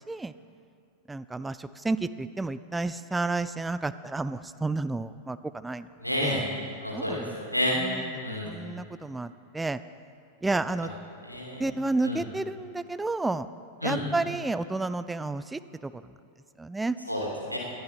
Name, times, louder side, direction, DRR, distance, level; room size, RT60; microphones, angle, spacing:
voice 1, 1.1-5.9 6.2-6.5 6.9-7.4 7.8-8.0 8.4-9.8 10.4-10.9 11.6-13.5 13.8-16.0 16.6-17.0, right 3 dB, 10° right, 13 dB, 0.4 m, -31 dB
voice 2, 6.0-6.5 6.8-7.8 8.2-8.5 11.2-11.6 12.0-12.2 13.8-14.0 17.1-17.6, equal, 90° left, -2 dB, 2.8 m, -30 dB
19.0 x 12.5 x 4.4 m, 2.4 s
figure-of-eight pair, 90°, 0 cm